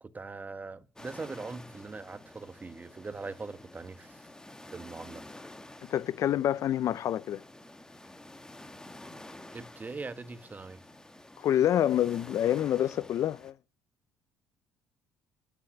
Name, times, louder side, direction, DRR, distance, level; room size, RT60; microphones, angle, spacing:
voice 1, 0.0-4.2 4.7-5.2 9.5-10.8, right 3 dB, 25° right, 1.6 m, -41 dB
sound 1, 1.0-13.5, left 1 dB, 10° left, 2.0 m, -50 dB
voice 2, 5.9-7.4 11.4-13.5, left 11 dB, 55° left, 0.7 m, -27 dB
11.5 x 9.8 x 8.6 m
hypercardioid pair, 60°, 6 cm